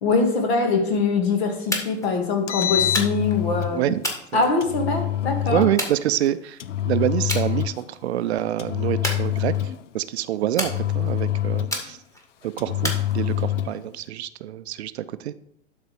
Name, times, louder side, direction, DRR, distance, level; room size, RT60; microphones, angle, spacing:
voice 1, 0.0-4.0 4.3-5.7, left 4 dB, 60° left, 4 dB, 2.1 m, -23 dB
sound 1, 1.7-2.1 2.9-3.4 4.0-5.0 5.8-6.6 7.3-7.5 7.9-8.2 9.0-9.8 10.6-11.2 11.7-12.3 12.8-13.6, equal, 10° left, 1.7 m, -31 dB
Engine, 2.3-3.8 4.6-5.8 6.6-7.9 8.6-9.9 10.6-11.9 12.6-13.8, left 12 dB, 85° left, 0.5 m, -26 dB
voice 2, 5.5-6.6 6.8-9.5 9.9-12.0 12.4-15.3, right 12 dB, 65° right, 14 dB, 0.6 m, -26 dB
11.5 x 4.1 x 4.8 m, 0.71 s
figure-of-eight pair, 100°, 35 cm